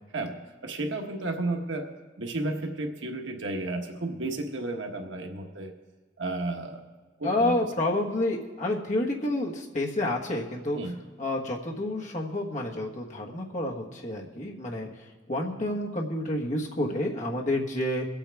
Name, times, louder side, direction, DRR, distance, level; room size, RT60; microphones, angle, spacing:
voice 1, 0.1-1.9 2.2-5.7 6.2-6.8 7.2-7.6 10.7-11.0, right 2 dB, 80° right, 3 dB, 1.2 m, -32 dB
voice 2, 7.2-10.8 11.2-14.9 15.3-18.1, left 1 dB, 40° left, 0 dB, 1.4 m, -29 dB
22.5 x 8.6 x 3.5 m, 1.4 s
head